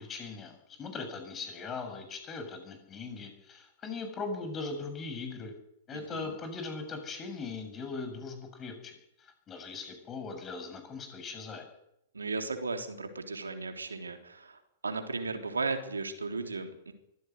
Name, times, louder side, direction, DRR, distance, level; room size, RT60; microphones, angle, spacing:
voice 1, 0.0-5.5 5.9-11.7, left 4 dB, 25° left, 7 dB, 7.2 m, -40 dB
voice 2, 5.9-6.3 12.1-16.9, right 3 dB, 85° right, 6 dB, 3.5 m, -36 dB
23.5 x 16.0 x 9.6 m, 0.82 s
figure-of-eight pair, 110°, 0 cm